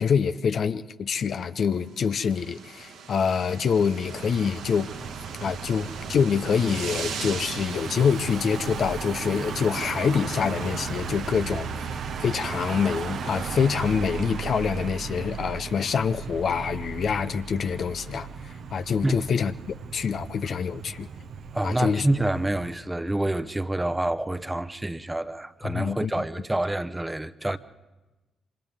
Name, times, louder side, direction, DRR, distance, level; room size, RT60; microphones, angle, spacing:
voice 1, 0.0-4.9 5.4-11.7 12.2-18.3 18.7-19.5 19.9-21.1 21.6-22.1 25.6-26.1, left 6 dB, 55° left, 0.6 m, -26 dB
sound 1, 1.8-15.0, right 5 dB, 80° right, 2.4 m, -41 dB
Car passing by / Engine, 4.1-22.8, right 6 dB, 65° right, 1.0 m, -36 dB
voice 2, 21.5-27.6, right 1 dB, 15° right, 0.9 m, -27 dB
28.0 x 25.5 x 3.6 m
hypercardioid pair, 45°, 0 cm